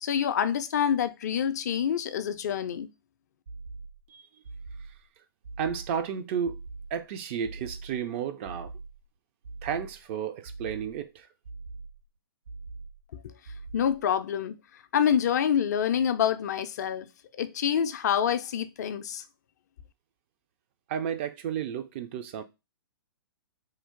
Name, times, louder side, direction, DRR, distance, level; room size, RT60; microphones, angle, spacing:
voice 1, 0.0-2.9 13.1-13.3 13.7-17.1 17.4-19.2, left 8 dB, 45° left, 0.4 m, -27 dB
sound 1, 3.5-4.1 4.4-5.1 5.4-6.1 6.4-7.1 7.4-8.1 8.4-9.1 9.4-10.1 10.4-11.1 11.4-12.1 12.4-13.1 13.4-14.1, right 3 dB, 75° right, 2.0 m, -43 dB
voice 2, 5.6-6.6 6.9-8.7 9.6-11.3 20.9-22.4, right 8 dB, 30° right, 0.4 m, -32 dB
3.2 x 2.4 x 3.5 m
figure-of-eight pair, 115°, 12 cm